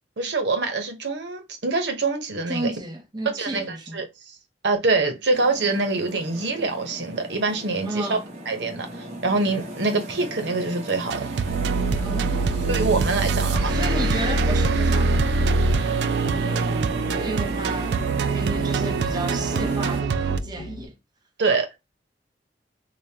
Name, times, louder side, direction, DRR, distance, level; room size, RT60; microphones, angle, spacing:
voice 1, 0.2-2.7 3.3-4.1 4.6-8.2 8.5-11.3 12.7-13.7 21.4-21.8, right 3 dB, 90° right, 0.9 m, -25 dB
voice 2, 2.5-4.0 7.8-8.3 8.7-8.8 12.0-12.8 13.6-15.3 15.6-18.0 18.3-20.9, right 1 dB, 25° right, 0.6 m, -33 dB
sound 1, 5.3-20.0, equal, 40° right, 1.1 m, -35 dB
sound 2, 11.1-20.4, right 4 dB, 75° right, 0.3 m, -24 dB
Musical instrument, 11.6-20.9, left 3 dB, 85° left, 0.5 m, -39 dB
4.9 x 2.1 x 2.8 m
head